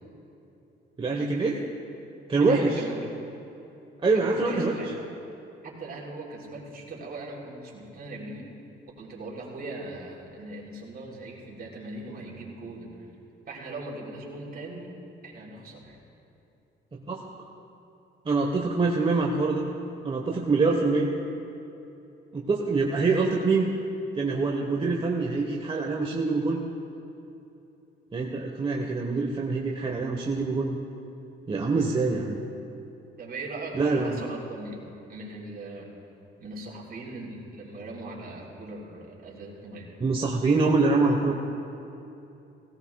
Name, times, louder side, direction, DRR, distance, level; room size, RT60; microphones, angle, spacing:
voice 1, 1.0-1.6 2.3-2.8 4.0-4.9 16.9-17.3 18.2-19.6 20.0-21.1 22.3-23.7 24.2-26.6 28.1-30.8 31.5-32.4 33.7-34.2 40.0-41.3, right 3 dB, 25° right, -1 dB, 1.2 m, -25 dB
voice 2, 2.4-3.1 4.1-4.9 5.6-8.5 9.0-12.9 13.5-14.9 15.2-16.0 33.2-34.8 35.1-35.9 36.4-39.9, right 2 dB, 50° right, -3 dB, 3.5 m, -39 dB
18.0 x 17.0 x 2.3 m, 2.9 s
cardioid pair, 90°, 20 cm